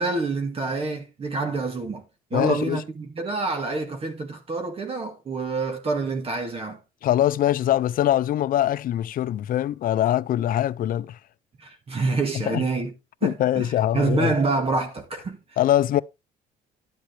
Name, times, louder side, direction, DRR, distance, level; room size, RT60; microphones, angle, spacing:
voice 1, 0.0-2.1 2.3-6.8 11.6-12.9 13.2-15.6, right 3 dB, 35° right, 2.0 m, -27 dB
voice 2, 2.3-2.8 7.0-11.2 12.5-12.6 13.2-14.3 15.6-16.0, left 12 dB, 55° left, 0.6 m, -23 dB
11.5 x 7.7 x 3.3 m
cardioid pair, 110°, 17 cm